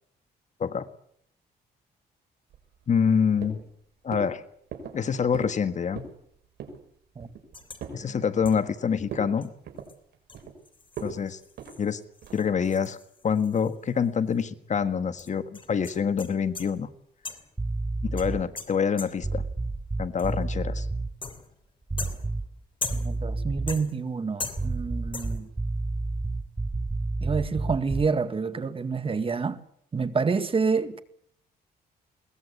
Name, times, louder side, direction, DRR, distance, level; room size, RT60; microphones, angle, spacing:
sound 1, 2.5-3.1 3.4-3.8 4.1-4.3 4.7-5.0 5.3-5.6 5.9-6.2 6.6-6.8 7.2-8.0 8.4-8.8 9.1-9.3 9.6-10.6 11.0-11.2 11.6-11.8 12.2-12.5, right 5 dB, 75° right, 5.7 m, -39 dB
voice 1, 2.9-3.6 4.0-4.4 4.9-6.0 7.9-9.5 11.0-11.4 11.8-12.0 12.3-13.0 13.2-16.9 18.0-19.4 20.0-20.9, left 6 dB, 45° left, 1.7 m, -26 dB
sound 2, 7.5-7.9 8.4-8.7 9.4-9.5 9.8-9.9 10.3-14.1 14.3-14.4 15.2-16.8 17.2-17.6 18.2-19.4 20.2-20.5 21.2-21.6 22.0-23.3 23.7-24.1 24.4-24.9 25.1-25.5, left 4 dB, 30° left, 3.1 m, -40 dB
sound 3, 17.6-18.5 19.2-21.1 21.9-22.6 22.9-23.9 24.5-28.2, right 2 dB, 10° right, 0.9 m, -30 dB
voice 2, 22.9-25.5 27.2-29.6 29.9-31.0, right 5 dB, 30° right, 1.9 m, -28 dB
22.0 x 19.5 x 8.4 m
cardioid pair, 105°, 17 cm